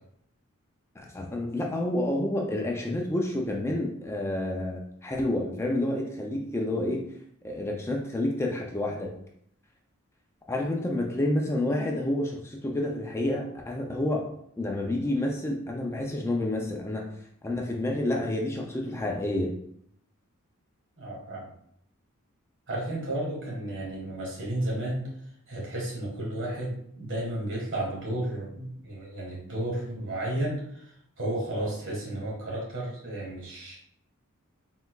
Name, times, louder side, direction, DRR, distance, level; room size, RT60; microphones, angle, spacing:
voice 1, 1.0-7.1 7.4-9.1 10.5-14.3 14.6-17.0 17.4-19.5, left 1 dB, 10° left, 0 dB, 0.4 m, -29 dB
voice 2, 21.0-21.5 22.7-25.1 25.5-33.8, right 1 dB, 60° right, -3 dB, 1.6 m, -33 dB
4.2 x 3.9 x 2.3 m, 0.69 s
head